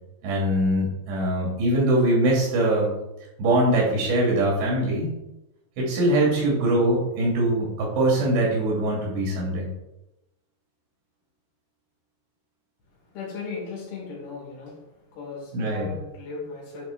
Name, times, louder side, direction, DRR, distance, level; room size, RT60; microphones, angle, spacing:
voice 1, 0.2-2.9 3.4-5.1 5.8-9.7 15.5-15.9, right 1 dB, 80° right, -3 dB, 4.7 m, -22 dB
voice 2, 13.1-14.8 15.1-16.9, left 4 dB, 65° left, -3 dB, 4.0 m, -36 dB
10.0 x 4.2 x 4.2 m, 0.93 s
omnidirectional pair, 5.0 m